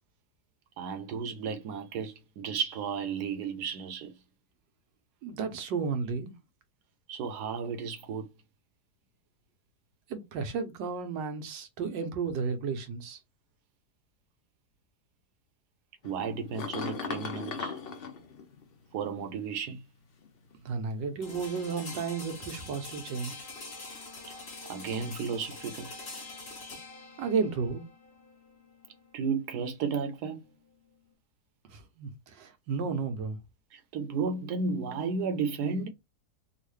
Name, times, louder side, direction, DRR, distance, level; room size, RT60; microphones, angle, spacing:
voice 1, 0.8-4.1 7.1-8.3 16.0-17.8 18.9-19.8 24.7-25.9 29.1-30.4 33.7-35.9, right 5 dB, 70° right, 1.2 m, -33 dB
voice 2, 5.2-6.3 10.1-13.2 20.6-23.5 27.2-27.8 31.7-33.4, right 5 dB, 90° right, 1.5 m, -33 dB
sound 1, 16.0-19.3 20.2-21.3 22.0-22.6 26.7-26.8, left 5 dB, 80° left, 0.5 m, -39 dB
sound 2, 21.2-31.1, left 3 dB, 40° left, 1.3 m, -45 dB
3.6 x 2.4 x 3.2 m
omnidirectional pair, 1.9 m